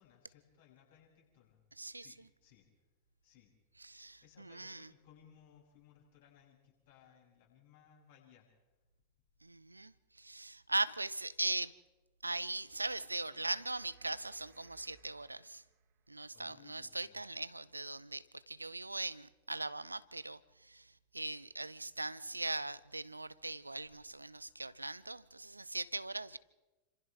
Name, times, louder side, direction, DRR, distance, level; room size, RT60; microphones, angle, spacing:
voice 1, 0.0-1.6 1.9-2.7 3.2-3.5 4.2-8.5 16.3-17.3, left 9 dB, 55° left, 7.2 m, -63 dB
voice 2, 3.8-4.9 9.4-9.9 10.2-11.7 12.2-15.6 16.1-20.4 20.7-20.8 21.1-26.4, right 2 dB, 85° right, 0.6 m, -40 dB
sound 1, 12.7-16.0 18.7-18.8, right 6 dB, 40° right, 3.4 m, -65 dB
29.0 x 26.5 x 3.4 m
figure-of-eight pair, 90°, 0 cm